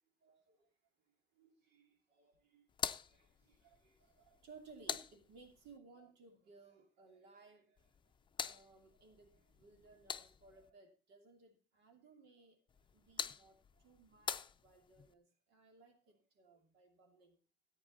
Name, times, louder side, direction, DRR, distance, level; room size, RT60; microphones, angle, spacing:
voice 1, 0.2-0.6 1.4-2.6 3.1-7.8 8.4-12.6 12.9-13.6 13.8-15.2 15.5-17.4, right 4 dB, 85° right, 4 dB, 2.8 m, -62 dB
sound 1, 2.7-5.8 7.8-10.7 12.7-15.1, left 7 dB, 30° left, 0.5 m, -46 dB
13.5 x 9.0 x 4.0 m, 0.34 s
cardioid pair, 110°, 17 cm